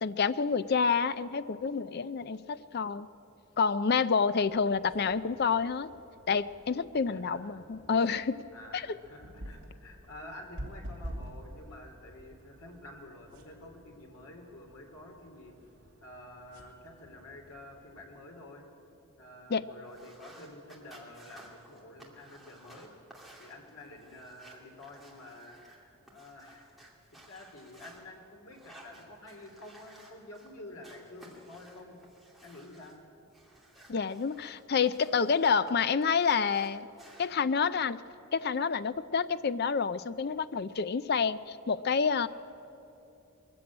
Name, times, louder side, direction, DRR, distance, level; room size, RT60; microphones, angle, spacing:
voice 1, 0.0-3.1 3.6-5.9 6.3-8.4 8.7-8.8 19.5-19.6 33.9-36.9 37.2-38.0 38.3-42.3, left 5 dB, 45° left, 14 dB, 0.4 m, -28 dB
sound 1, 4.4-18.0, equal, 70° right, 2.6 m, -49 dB
voice 2, 7.1-7.4 7.7-7.8 8.5-15.6 16.0-18.7 19.2-22.9 23.4-26.7 27.3-32.0 32.4-33.0, left 1 dB, 80° left, 2 dB, 3.3 m, -49 dB
sound 2, 19.8-28.0 28.5-30.5 30.8-32.9 33.3-35.7 36.0-37.3, right 1 dB, ahead, 2.3 m, -56 dB
22.0 x 14.0 x 8.5 m, 2.9 s
head